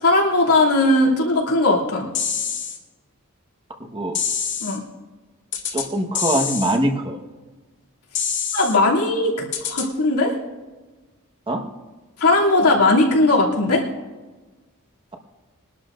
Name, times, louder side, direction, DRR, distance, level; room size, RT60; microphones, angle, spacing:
voice 1, 0.0-2.1 4.6-4.8 8.5-10.3 12.2-13.8, left 2 dB, 90° left, -3 dB, 2.9 m, -18 dB
sound 1, 2.1-2.8 4.1-4.8 5.5-5.9 6.1-6.8 8.1-8.8 9.5-9.9, left 7 dB, 55° left, 2.2 m, -26 dB
voice 2, 5.7-7.2 11.5-11.6, right 1 dB, 25° right, 3 dB, 1.4 m, -22 dB
22.5 x 12.0 x 2.6 m, 1.3 s
head